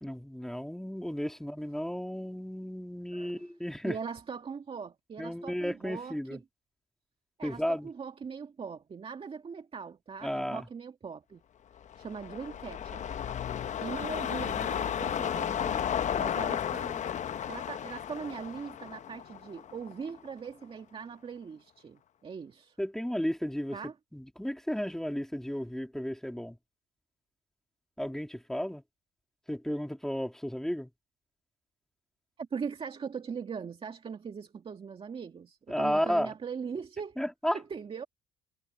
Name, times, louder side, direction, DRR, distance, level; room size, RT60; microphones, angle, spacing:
voice 1, 0.0-3.9 5.2-6.4 7.4-7.9 10.2-10.7 22.8-23.8 24.1-26.6 28.0-28.8 29.5-30.9 35.7-36.3 37.2-37.6, equal, 5° left, 2.6 m, -33 dB
voice 2, 3.1-3.5 3.8-6.4 7.4-11.4 11.9-13.1 13.8-15.8 16.2-17.0 17.5-22.8 23.7-23.9 32.4-37.2 37.5-38.0, right 6 dB, 35° right, 2.1 m, -40 dB
sound 1, 11.8-20.3 20.6-20.7, left 9 dB, 45° left, 0.9 m, -33 dB
cardioid pair, 110°, 17 cm